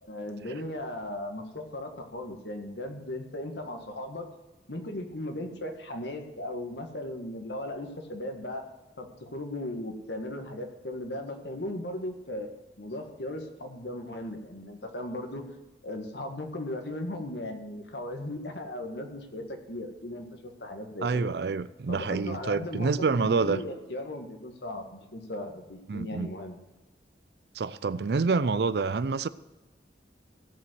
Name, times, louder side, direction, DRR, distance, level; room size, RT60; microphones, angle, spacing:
voice 1, 0.0-4.3 4.7-8.6 9.0-12.5 12.8-15.4 15.8-21.3 21.9-26.6, left 1 dB, 75° left, 1.8 m, -37 dB
voice 2, 21.0-23.6 25.9-26.3 27.6-29.3, right 4 dB, 65° right, 0.4 m, -27 dB
16.0 x 5.5 x 7.9 m
head